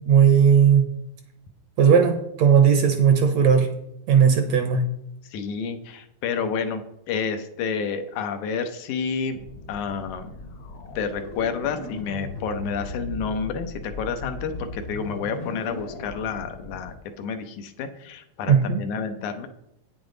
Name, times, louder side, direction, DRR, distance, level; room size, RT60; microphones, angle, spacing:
voice 1, 0.1-0.9 1.8-3.7 4.1-4.8 18.5-18.8, right 7 dB, 70° right, 7 dB, 1.8 m, -17 dB
voice 2, 5.3-9.4 9.7-10.4 11.0-19.5, left 6 dB, 75° left, 6 dB, 2.2 m, -30 dB
sound 1, 9.3-16.9, left 2 dB, 55° left, 1.5 m, -37 dB
9.1 x 8.8 x 3.9 m, 0.79 s
omnidirectional pair, 3.7 m